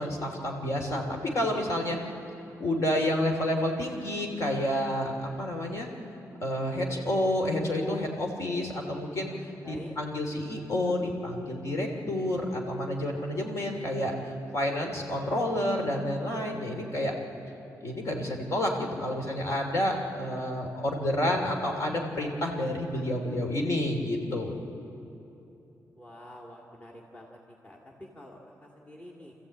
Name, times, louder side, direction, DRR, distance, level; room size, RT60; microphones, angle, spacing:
voice 1, 0.0-2.0 2.6-5.9 6.4-17.1 17.8-24.6, left 1 dB, 55° left, 2 dB, 3.0 m, -29 dB
voice 2, 26.0-29.3, left 1 dB, 20° left, -2 dB, 2.1 m, -48 dB
27.5 x 14.5 x 8.6 m, 2.9 s
wide cardioid pair, 155°, 6 cm